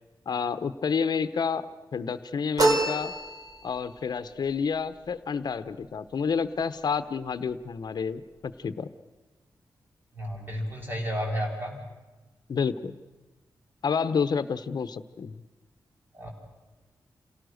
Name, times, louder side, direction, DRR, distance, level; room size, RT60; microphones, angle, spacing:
voice 1, 0.3-1.7 1.9-3.1 3.6-8.9 12.5-12.9 13.8-15.4, left 6 dB, 65° left, 12 dB, 1.0 m, -29 dB
sound 1, 2.6-3.8, right 2 dB, 55° right, 3.5 m, -26 dB
voice 2, 10.2-11.8 16.1-16.3, equal, 30° right, -1 dB, 6.2 m, -32 dB
27.5 x 17.5 x 6.6 m, 1.2 s
wide cardioid pair, 125°, 8 cm